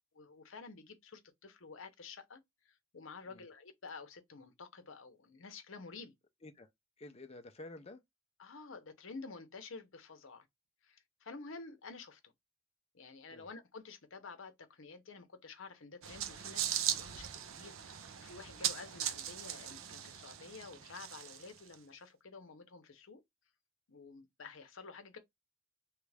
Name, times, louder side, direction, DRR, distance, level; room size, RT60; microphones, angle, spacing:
voice 1, 0.1-2.4 2.6-6.1 8.4-10.5 10.8-12.3 12.9-23.2 23.9-25.2, left 4 dB, 65° left, 0.7 m, -51 dB
voice 2, 7.0-8.0 13.3-13.5, left 2 dB, 30° left, 0.5 m, -50 dB
sound 1, 16.0-21.7, right 10 dB, 70° right, 0.5 m, -39 dB
3.1 x 2.4 x 3.3 m
head